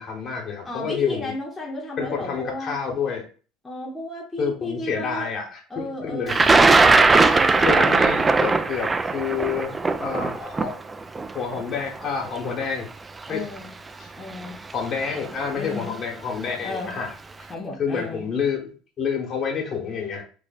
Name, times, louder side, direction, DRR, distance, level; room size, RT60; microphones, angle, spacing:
voice 1, 0.0-1.3 2.0-3.2 4.4-6.4 7.6-10.7 11.3-12.9 13.3-13.4 14.0-14.1 14.7-17.1 17.8-20.2, left 6 dB, 45° left, 0 dB, 1.3 m, -28 dB
voice 2, 0.6-2.8 3.6-5.3 5.7-6.5 7.1-7.9 13.3-13.7 14.2-14.6 15.5-15.9 16.6-16.9 17.5-18.3, left 2 dB, 15° left, -3 dB, 0.9 m, -33 dB
Thunder, 6.3-12.3 13.2-13.3 14.4-14.7 15.0-15.5, right 3 dB, 20° right, 0.3 m, -19 dB
3.3 x 2.1 x 4.1 m, 0.38 s
supercardioid pair, 100°, 0 cm